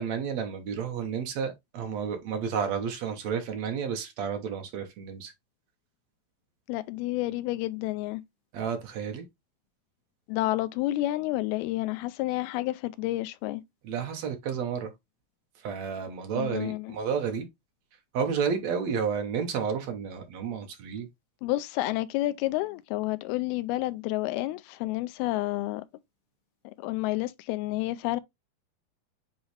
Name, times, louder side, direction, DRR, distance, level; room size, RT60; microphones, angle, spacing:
voice 1, 0.0-5.3 8.5-9.2 13.8-14.9 15.6-17.5 18.1-21.1, right 6 dB, 65° right, 1.8 m, -31 dB
voice 2, 6.7-8.2 10.3-13.6 16.4-16.9 21.4-25.8 26.8-28.2, left 17 dB, 90° left, 2.5 m, -30 dB
8.1 x 3.9 x 3.3 m
omnidirectional pair, 4.4 m